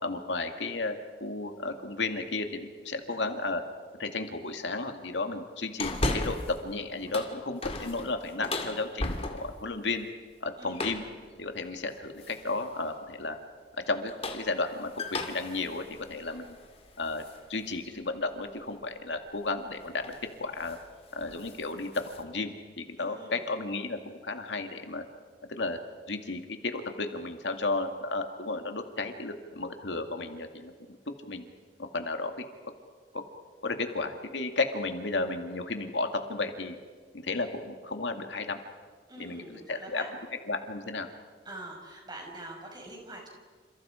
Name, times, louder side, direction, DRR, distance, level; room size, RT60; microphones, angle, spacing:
voice 1, 0.0-3.6 4.0-10.1 10.4-11.0 11.4-13.4 13.9-16.6 17.0-17.2 17.5-20.1 20.4-20.8 21.1-25.0 25.5-25.8 26.1-30.7 31.3-31.4 31.9-32.3 32.6-32.7 33.1-33.2 33.6-36.8 37.1-38.6 39.2-40.0 40.5-41.1, left 3 dB, 85° left, 6 dB, 2.2 m, -33 dB
voice 2, 3.1-3.5 10.6-10.9 23.0-23.5 39.1-40.1 41.4-43.3, right 1 dB, 25° right, 1 dB, 5.8 m, -45 dB
sound 1, 5.8-6.6 7.0-9.7 10.7-11.2 12.2-12.6 13.9-17.4 17.8-17.9 19.5-19.7 20.0-20.3 20.6-20.8 21.2-22.2, left 2 dB, 35° left, 2.4 m, -36 dB
29.0 x 28.0 x 5.1 m, 1.5 s
head